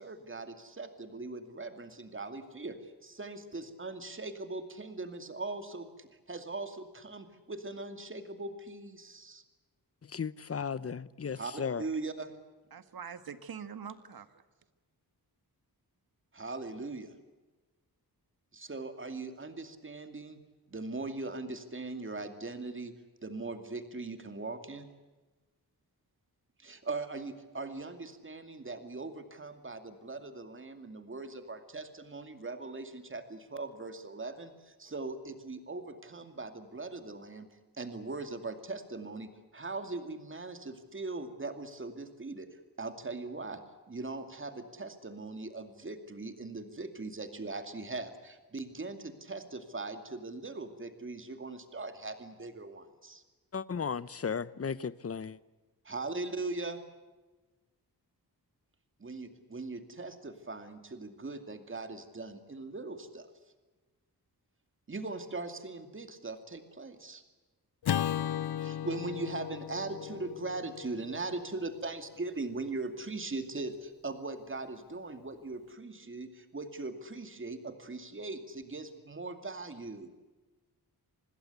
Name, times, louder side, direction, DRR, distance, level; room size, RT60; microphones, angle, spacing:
voice 1, 0.0-9.4 11.3-12.3 16.3-17.1 18.5-20.4 20.7-22.9 23.2-24.9 26.6-37.5 37.8-43.6 43.9-53.2 55.8-56.8 59.0-63.3 64.9-67.2 68.6-80.1, right 3 dB, 30° right, 2.5 m, -40 dB
voice 2, 10.1-11.8 53.5-55.4, left 6 dB, 40° left, 0.8 m, -35 dB
voice 3, 12.7-14.3, right 7 dB, 65° right, 1.6 m, -44 dB
Acoustic guitar / Strum, 67.8-72.3, left 10 dB, 75° left, 0.8 m, -36 dB
26.5 x 20.0 x 8.1 m
wide cardioid pair, 160°, 39 cm